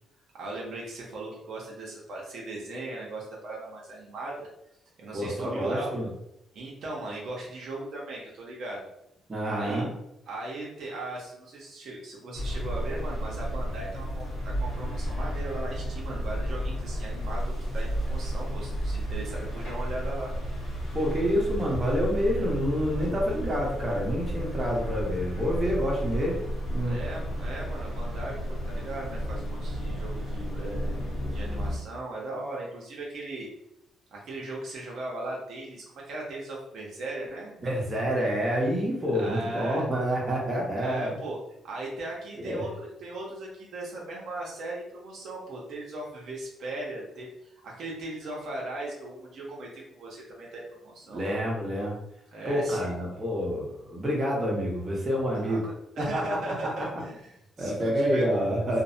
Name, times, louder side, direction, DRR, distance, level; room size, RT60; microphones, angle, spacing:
voice 1, 0.4-4.5 5.0-6.0 6.5-8.9 9.5-9.9 10.3-20.3 26.9-33.5 34.1-37.5 39.1-39.9 40.8-41.4 41.6-51.3 52.3-53.0 55.3-58.2, right 2 dB, 70° right, -3 dB, 0.7 m, -38 dB
voice 2, 5.1-6.1 9.3-9.9 20.9-26.4 26.7-27.0 37.6-41.1 42.4-42.6 51.1-51.9 52.4-55.6 56.0-56.2 56.8-56.9 57.6-58.8, equal, 30° right, -3 dB, 0.9 m, -28 dB
sound 1, 12.3-31.8, equal, 65° left, 0.8 m, -32 dB
2.5 x 2.0 x 2.6 m, 0.80 s
cardioid pair, 90°, 0 cm